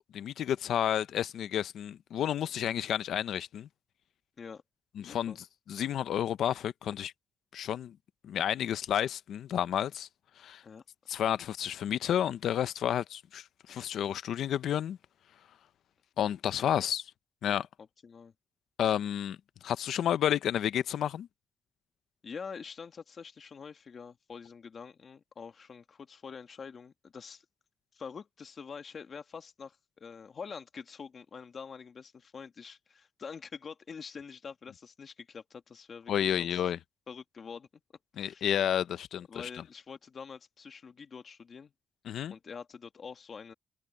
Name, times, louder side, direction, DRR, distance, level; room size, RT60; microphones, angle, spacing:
voice 1, 0.1-3.7 5.0-5.3 5.7-7.1 7.5-8.0 8.2-10.1 10.4-10.6 11.1-15.0 16.2-17.0 17.4-17.7 18.8-19.4 19.6-21.3 36.1-36.8 38.2-39.5 42.1-42.3, left 10 dB, 90° left, 0.7 m, -31 dB
voice 2, 5.0-5.4 10.6-10.8 16.6-16.8 18.0-18.3 22.2-27.4 27.9-36.6 37.1-37.7 38.1-38.5 39.3-41.7 42.3-43.5, left 6 dB, 45° left, 1.7 m, -46 dB
cardioid pair, 120°, 0 cm